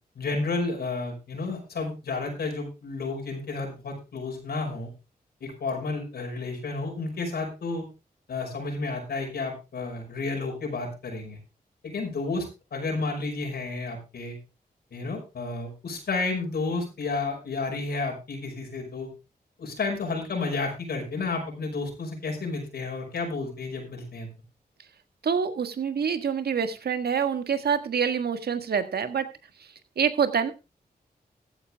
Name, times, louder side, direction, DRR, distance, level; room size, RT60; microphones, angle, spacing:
voice 1, 0.2-4.9 5.4-7.8 8.3-11.4 11.8-12.5 12.7-14.4 14.9-19.1 19.6-24.3, left 3 dB, 85° left, 0 dB, 5.5 m, -31 dB
voice 2, 25.2-29.2 30.0-30.5, right 7 dB, 80° right, 9 dB, 1.7 m, -26 dB
15.0 x 9.7 x 3.5 m, 0.28 s
cardioid pair, 70°, 16 cm